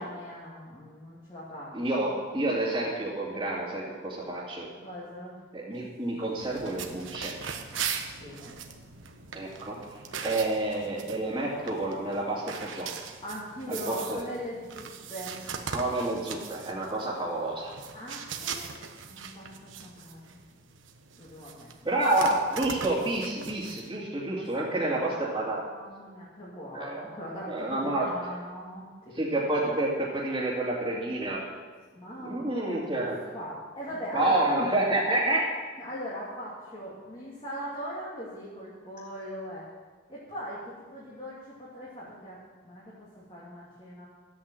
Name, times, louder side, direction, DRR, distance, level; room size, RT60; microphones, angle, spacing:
voice 1, 0.0-2.1 4.8-5.4 8.2-8.5 13.2-15.4 17.9-18.7 19.1-20.4 21.2-21.7 24.4-24.5 24.7-25.1 25.7-29.1 31.9-32.8 33.3-34.4 35.8-39.6 40.1-44.1, equal, 30° left, -7 dB, 2.8 m, -40 dB
voice 2, 1.7-4.7 5.5-7.3 9.3-9.8 10.2-12.9 13.7-14.2 15.7-17.7 21.8-25.7 26.7-27.0 27.5-28.1 29.1-31.4 32.2-33.2 34.1-35.5, right 2 dB, 20° right, -9 dB, 2.6 m, -29 dB
sound 1, 6.4-23.9, right 6 dB, 90° right, 1.2 m, -40 dB
13.5 x 8.6 x 7.7 m, 1.4 s
head